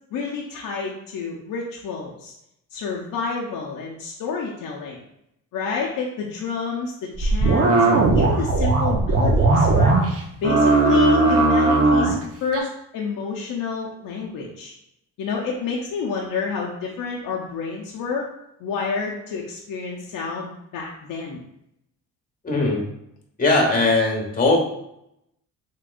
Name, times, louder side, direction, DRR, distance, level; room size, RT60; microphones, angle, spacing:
voice 1, 0.1-2.3 2.7-5.0 5.5-9.9 10.4-14.7 15.2-18.3 18.6-21.4, left 5 dB, 65° left, -2 dB, 0.6 m, -29 dB
sound 1, 7.2-10.2 10.4-12.2 12.5-12.6, right 3 dB, 45° right, 0.7 m, -17 dB
voice 2, 22.4-22.8 23.4-24.6, left 2 dB, 25° left, 0 dB, 1.2 m, -19 dB
3.5 x 3.0 x 2.4 m, 0.79 s
cardioid pair, 85°, 35 cm